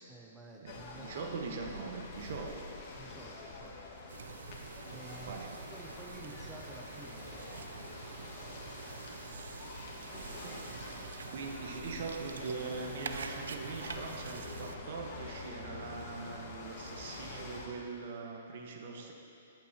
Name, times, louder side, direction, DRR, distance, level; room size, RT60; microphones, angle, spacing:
voice 1, 0.1-1.6 2.9-3.8 4.9-5.4 5.7-8.0 18.9-19.1, right 2 dB, 10° right, 0 dB, 0.6 m, -52 dB
voice 2, 0.6-2.5 5.3-5.5 10.4-10.7 11.3-19.1, right 4 dB, 60° right, 2 dB, 1.2 m, -42 dB
sound 1, 0.7-17.7, left 3 dB, 45° left, 1.5 m, -47 dB
sound 2, 4.1-14.8, right 5 dB, 80° right, 0.5 m, -46 dB
14.5 x 8.3 x 2.8 m, 2.7 s
hypercardioid pair, 140°, 0 cm